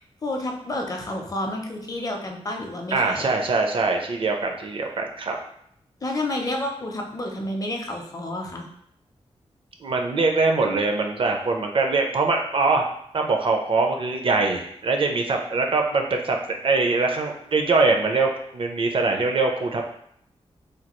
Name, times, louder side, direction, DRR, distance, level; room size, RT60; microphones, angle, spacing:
voice 1, 0.2-3.3 6.0-8.7, left 1 dB, 35° left, 2 dB, 0.5 m, -30 dB
voice 2, 2.9-5.4 9.8-12.8 13.1-16.4 16.6-19.9, right 3 dB, 50° right, 2 dB, 0.5 m, -23 dB
3.2 x 2.3 x 3.0 m, 0.70 s
wide cardioid pair, 95°, 11 cm